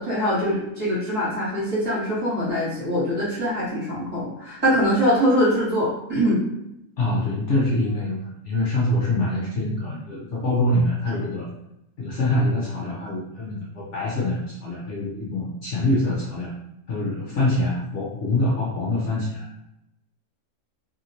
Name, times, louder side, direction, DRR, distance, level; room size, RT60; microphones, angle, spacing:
voice 1, 0.0-6.4, equal, 25° right, -10 dB, 1.6 m, -23 dB
voice 2, 7.0-11.5 12.0-16.5 16.9-19.5, left 1 dB, 60° left, -5 dB, 0.9 m, -25 dB
3.0 x 2.8 x 2.7 m, 0.84 s
omnidirectional pair, 1.6 m